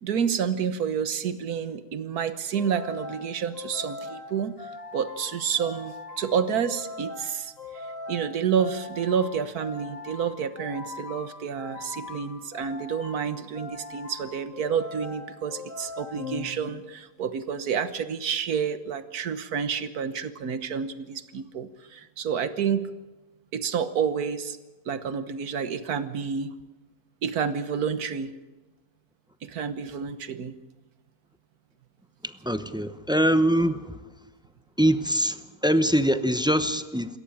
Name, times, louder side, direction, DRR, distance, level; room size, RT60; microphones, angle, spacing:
voice 1, 0.0-7.8 8.1-22.9 23.5-24.6 24.8-26.5 27.2-28.3 29.4-30.6, right 7 dB, 75° right, 12 dB, 1.7 m, -29 dB
sound 1, 2.5-17.1, left 3 dB, 60° left, 3.1 m, -41 dB
voice 2, 32.2-33.9 34.8-37.2, equal, 5° right, 10 dB, 0.6 m, -23 dB
27.0 x 14.0 x 8.8 m, 1.2 s
omnidirectional pair, 1.6 m